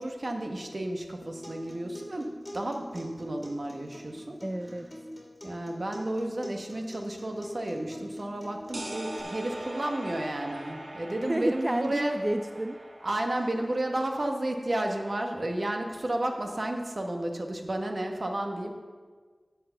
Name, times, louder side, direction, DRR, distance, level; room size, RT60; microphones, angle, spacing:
voice 1, 0.0-4.4 5.4-12.2 13.0-18.7, right 1 dB, 65° right, 3 dB, 1.2 m, -32 dB
Acoustic guitar, 1.2-9.2, equal, 20° left, 2.4 m, -45 dB
voice 2, 4.4-4.9 11.3-12.8, right 1 dB, 25° right, 7 dB, 0.4 m, -30 dB
sound 1, 8.7-14.3, right 1 dB, 85° right, 1.6 m, -42 dB
11.0 x 4.7 x 7.1 m, 1.5 s
wide cardioid pair, 50°, 0 cm